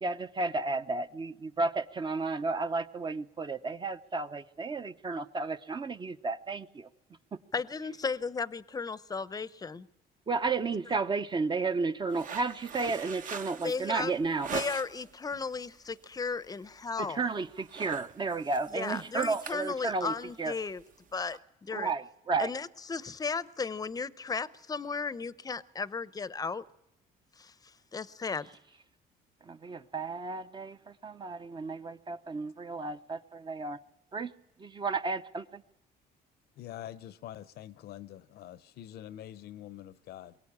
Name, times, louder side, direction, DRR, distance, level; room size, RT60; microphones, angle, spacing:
voice 1, 0.0-6.9 7.3-7.4 10.3-14.5 17.0-20.5 21.7-22.5 29.4-33.8 34.1-34.3 34.6-35.6, right 4 dB, 25° right, 0.7 m, -33 dB
voice 2, 7.5-9.9 13.6-14.1 14.5-17.2 18.7-20.8 21.1-21.9 22.4-26.6 27.4-27.5 27.9-28.5, left 4 dB, 20° left, 0.7 m, -35 dB
sound 1, 12.1-15.1 15.6-15.9 16.3-16.5 16.8-17.2 17.5-21.4, right 6 dB, 50° right, 1.1 m, -42 dB
voice 3, 36.5-40.4, left 12 dB, 70° left, 0.8 m, -45 dB
23.0 x 17.0 x 8.6 m
cardioid pair, 110°, 17 cm